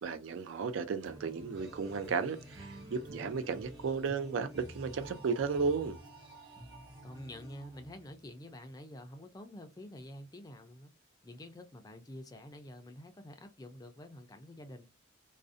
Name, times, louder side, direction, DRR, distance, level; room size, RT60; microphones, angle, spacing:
voice 1, 0.0-6.0, right 5 dB, 75° right, 0.4 m, -34 dB
sound 1, 1.0-6.1 6.6-6.9, right 1 dB, 20° right, 0.7 m, -52 dB
sound 2, 1.5-8.5, right 2 dB, 55° right, 1.0 m, -52 dB
voice 2, 7.0-10.9 11.2-14.9, left 1 dB, 20° left, 0.3 m, -48 dB
2.5 x 2.0 x 2.5 m
head